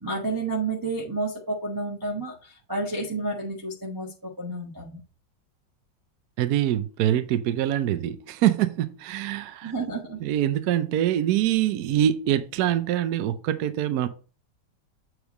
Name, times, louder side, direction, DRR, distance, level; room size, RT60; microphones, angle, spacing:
voice 1, 0.0-5.0 9.6-10.2, right 2 dB, 15° right, 1.0 m, -30 dB
voice 2, 6.4-9.7 10.2-14.1, right 11 dB, 65° right, 1.0 m, -24 dB
8.0 x 3.3 x 5.2 m
omnidirectional pair, 2.1 m